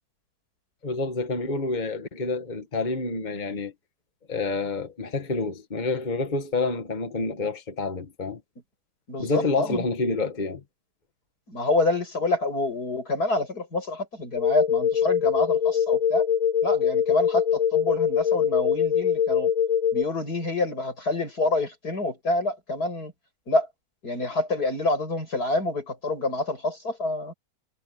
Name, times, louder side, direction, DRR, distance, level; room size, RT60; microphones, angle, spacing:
voice 1, 0.8-3.7 4.3-8.4 9.2-10.6, left 3 dB, 30° left, 1.7 m, -28 dB
voice 2, 9.1-9.8 11.5-16.3 16.6-19.5 19.9-23.1 23.5-23.7 24.0-27.3, left 2 dB, 80° left, 8.5 m, -27 dB
sound 1, 14.4-20.0, left 8 dB, 65° left, 1.1 m, -23 dB
omnidirectional pair, 1.6 m